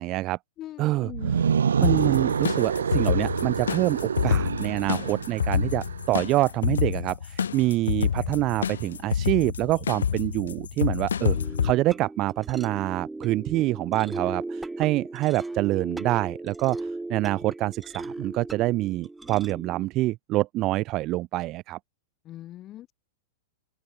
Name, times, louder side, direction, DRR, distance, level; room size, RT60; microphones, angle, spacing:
voice 1, 0.0-0.4 0.8-1.5 1.8-11.4 11.6-21.8, right 18 dB, 40° right, 1.3 m, -26 dB
voice 2, 0.6-1.5 22.3-22.9, left 13 dB, 35° left, 0.9 m, -41 dB
sound 1, 1.1-6.1, right 7 dB, 80° right, 0.9 m, -27 dB
sound 2, 1.8-11.7, left 7 dB, 80° left, 3.3 m, -28 dB
sound 3, 11.3-19.9, right 2 dB, 5° right, 2.5 m, -37 dB
open air
hypercardioid pair, 105°, 0 cm